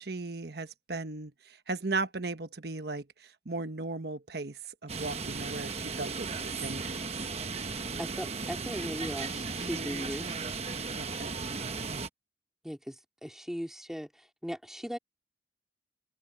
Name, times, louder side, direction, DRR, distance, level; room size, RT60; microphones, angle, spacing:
voice 1, 0.0-7.1 10.9-11.3, right 3 dB, 60° right, 1.2 m, -37 dB
sound 1, 4.9-12.1, right 4 dB, 35° right, 1.0 m, -36 dB
voice 2, 8.0-10.3 12.6-15.0, equal, 5° right, 3.0 m, -38 dB
open air
head